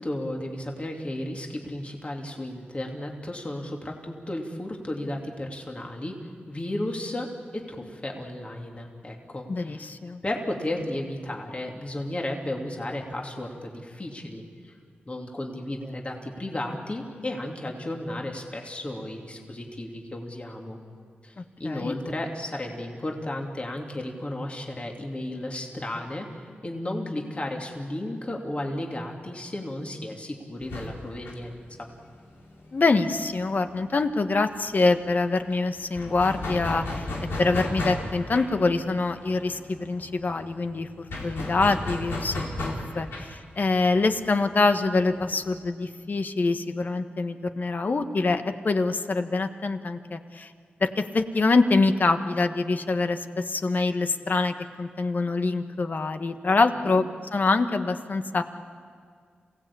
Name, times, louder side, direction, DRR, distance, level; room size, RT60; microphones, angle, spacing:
voice 1, 0.0-9.9 10.2-14.7 15.1-20.8 21.2-21.3 21.6-31.9 56.8-57.0, left 1 dB, 35° left, 1 dB, 2.9 m, -34 dB
voice 2, 9.5-10.2 21.4-21.9 32.7-37.1 37.4-42.3 42.6-50.5 50.8-58.4, left 3 dB, 50° left, 8 dB, 1.4 m, -25 dB
sound 1, 30.6-34.0 34.3-34.4 34.7-45.7, left 1 dB, 90° left, 4.1 m, -35 dB
27.5 x 17.0 x 8.6 m, 2.1 s
cardioid pair, 55°, 4 cm